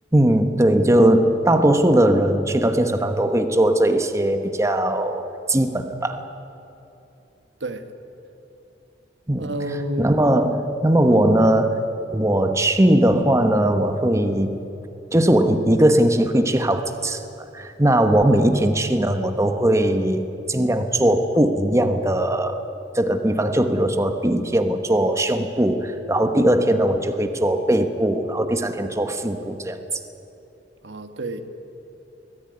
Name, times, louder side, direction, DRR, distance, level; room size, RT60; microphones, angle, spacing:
voice 1, 0.1-6.2 9.3-9.6 10.0-11.8 12.1-14.6 15.1-22.6 22.9-29.8, right 1 dB, 15° right, 7 dB, 1.1 m, -19 dB
voice 2, 9.4-10.3 11.1-11.3 26.3-26.5 30.8-31.4, right 1 dB, 90° right, 8 dB, 1.5 m, -30 dB
22.5 x 14.5 x 9.5 m, 3.0 s
head